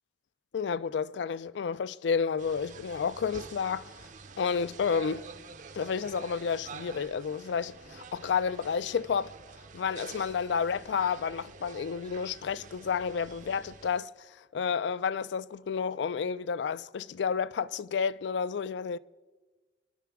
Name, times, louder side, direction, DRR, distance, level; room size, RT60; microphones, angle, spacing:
voice 1, 0.5-4.1 4.4-5.3 5.7-9.4 9.7-19.0, left 6 dB, 70° left, 0.4 m, -31 dB
sound 1, 2.4-14.0, right 4 dB, 45° right, 0.6 m, -48 dB
26.5 x 11.5 x 3.5 m
head